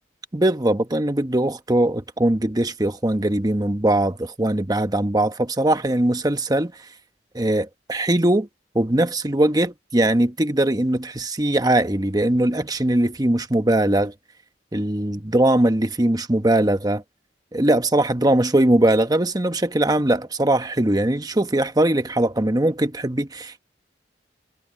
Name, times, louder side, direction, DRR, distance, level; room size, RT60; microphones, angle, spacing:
voice 1, 0.3-6.7 7.3-8.5 8.7-14.1 14.7-17.0 17.5-23.6, right 1 dB, 20° right, 1.1 m, -20 dB
head